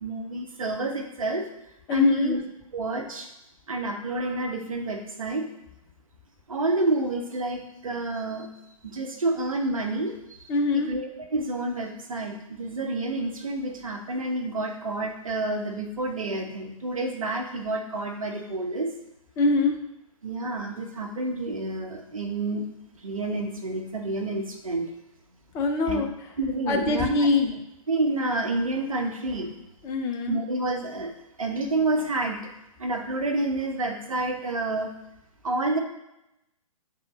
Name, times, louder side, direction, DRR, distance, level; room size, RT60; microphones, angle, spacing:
voice 1, 0.0-1.5 1.9-2.4 2.7-3.3 3.7-5.5 6.5-8.5 8.8-19.0 20.2-22.7 22.9-24.9 25.9-26.0 26.4-27.3 27.9-29.5 30.3-31.1 31.4-32.5 32.8-34.9 35.4-35.8, right 2 dB, 65° right, 3 dB, 1.1 m, -29 dB
voice 2, 1.9-2.4 10.5-10.9 19.4-19.7 25.5-26.1 26.7-27.6 29.8-30.4, left 4 dB, 15° left, 3 dB, 0.6 m, -23 dB
7.6 x 3.8 x 3.2 m, 0.88 s
figure-of-eight pair, 120°, 18 cm